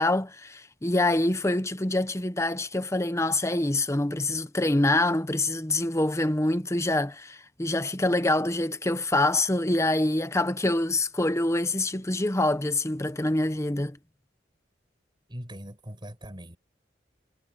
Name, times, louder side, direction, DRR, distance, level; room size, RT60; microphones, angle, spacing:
voice 1, 0.0-14.0, left 2 dB, 15° left, 1.0 m, -25 dB
voice 2, 15.3-16.6, equal, 25° right, 8.0 m, -41 dB
head